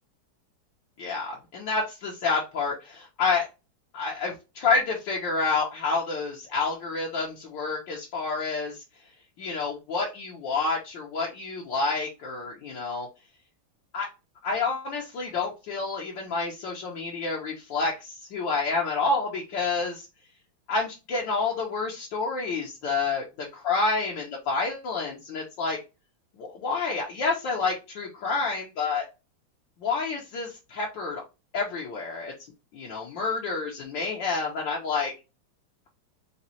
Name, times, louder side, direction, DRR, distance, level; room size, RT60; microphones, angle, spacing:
voice 1, 1.0-3.5 3.9-8.8 9.4-13.1 13.9-14.1 14.4-20.1 20.7-23.2 23.6-25.8 26.4-29.1 29.8-31.2 31.5-32.3 32.7-35.1, left 4 dB, 70° left, -2 dB, 1.5 m, -29 dB
5.1 x 2.3 x 2.7 m, 0.27 s
omnidirectional pair, 2.2 m